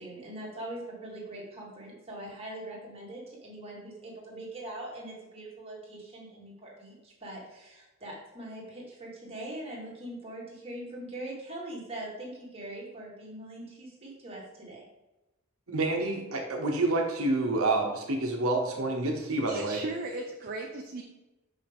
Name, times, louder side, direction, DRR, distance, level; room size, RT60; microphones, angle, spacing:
voice 1, 0.0-14.8, right 1 dB, 25° right, -4 dB, 1.9 m, -42 dB
voice 2, 15.7-19.8, right 2 dB, 70° right, 1 dB, 1.0 m, -28 dB
voice 3, 19.5-21.0, right 2 dB, 45° right, 0 dB, 0.6 m, -36 dB
5.9 x 5.6 x 3.5 m, 1.0 s
head